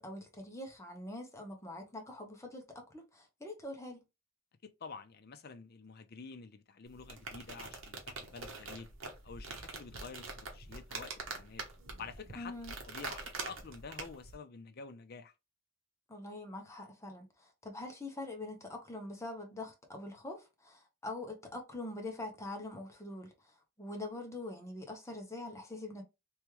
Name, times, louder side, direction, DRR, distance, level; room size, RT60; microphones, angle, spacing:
voice 1, 0.0-4.0 12.4-12.7 16.1-26.0, left 2 dB, 15° left, 0.9 m, -44 dB
voice 2, 4.6-8.9 9.2-11.6 12.0-12.5 12.9-15.3, left 5 dB, 50° left, 0.6 m, -49 dB
sound 1, 6.9-14.3, right 3 dB, 70° right, 1.1 m, -45 dB
3.5 x 3.1 x 3.1 m
head